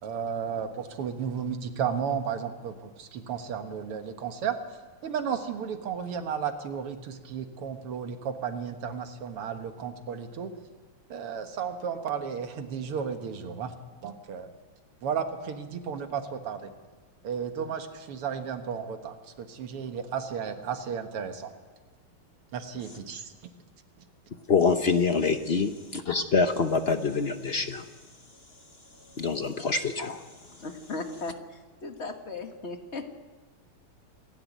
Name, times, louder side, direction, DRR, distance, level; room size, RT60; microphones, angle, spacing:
voice 1, 0.0-4.6 5.0-10.5 11.1-13.7 14.0-14.5 15.0-16.7 17.2-21.5 22.5-23.5, right 7 dB, 90° right, 7 dB, 2.4 m, -33 dB
voice 2, 24.5-27.8 29.2-30.1, left 4 dB, 60° left, 8 dB, 0.6 m, -25 dB
voice 3, 30.6-33.1, left 3 dB, 35° left, 5 dB, 1.8 m, -37 dB
27.5 x 11.5 x 9.3 m, 1.3 s
omnidirectional pair, 2.4 m